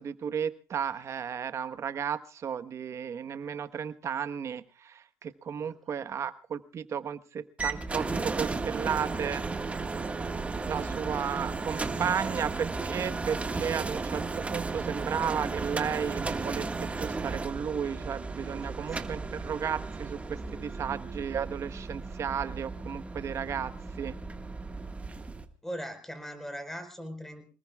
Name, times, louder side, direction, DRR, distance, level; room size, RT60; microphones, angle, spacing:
voice 1, 0.0-9.4 10.6-23.7 24.0-24.1, right 7 dB, 45° right, 11 dB, 1.2 m, -34 dB
sound 1, 7.6-25.5, right 3 dB, 20° right, 1.7 m, -34 dB
voice 2, 10.2-10.6 18.6-19.3 25.6-27.5, equal, 5° left, 7 dB, 4.7 m, -41 dB
27.0 x 19.5 x 2.4 m, 0.34 s
supercardioid pair, 95°, 7 cm